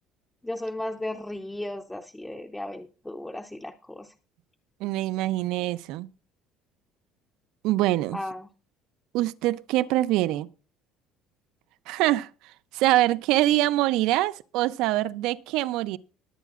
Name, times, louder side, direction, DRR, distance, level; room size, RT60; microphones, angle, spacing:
voice 1, 0.4-4.1 8.1-8.5, left 1 dB, 5° left, 0.6 m, -35 dB
voice 2, 4.8-6.1 7.6-8.2 9.1-10.5 11.9-12.3 12.7-16.0, right 15 dB, 70° right, 0.5 m, -24 dB
20.0 x 9.2 x 2.5 m
cardioid pair, 170°, 0 cm